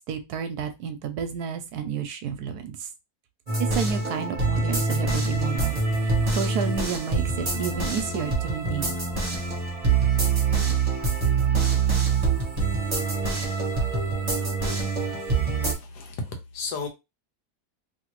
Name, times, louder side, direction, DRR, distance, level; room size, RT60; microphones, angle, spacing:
voice 1, 0.1-2.9 3.6-5.8 6.3-8.9, right 8 dB, 75° right, 1.1 m, -30 dB
sound 1, 3.5-15.7, right 4 dB, 25° right, 1.1 m, -25 dB
voice 2, 15.8-16.9, left 3 dB, 80° left, 1.4 m, -34 dB
3.0 x 2.8 x 3.0 m
omnidirectional pair, 1.7 m